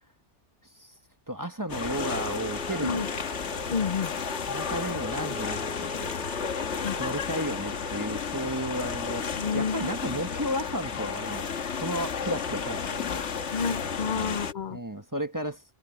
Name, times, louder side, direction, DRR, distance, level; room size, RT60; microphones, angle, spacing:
voice 1, 1.3-3.1 4.5-6.0 6.9-11.4 11.8-13.1 14.1-14.4 14.7-15.6, equal, 15° right, 1.3 m, -33 dB
sound 1, 1.7-14.5, left 6 dB, 75° left, 1.6 m, -32 dB
sound 2, 1.9-9.9, equal, ahead, 1.8 m, -45 dB
voice 2, 3.7-4.1 6.8-7.0 9.4-9.9 13.1-14.8, left 6 dB, 45° left, 0.8 m, -30 dB
omnidirectional pair, 1.2 m